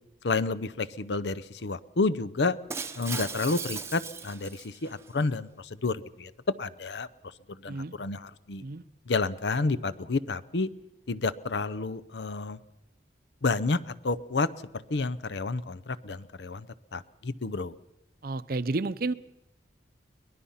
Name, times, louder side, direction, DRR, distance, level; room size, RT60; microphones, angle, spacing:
voice 1, 0.2-2.6 3.0-6.3 6.6-7.1 7.6-8.6 9.1-10.7 11.1-12.6 13.4-14.5 14.7-16.7 16.9-17.7, left 3 dB, 75° left, 16 dB, 0.7 m, -30 dB
Shatter, 2.7-5.1, right 5 dB, 15° right, 0.8 m, -37 dB
voice 2, 18.2-19.1, right 3 dB, 55° right, 15 dB, 0.6 m, -31 dB
23.5 x 19.5 x 5.7 m, 0.92 s
head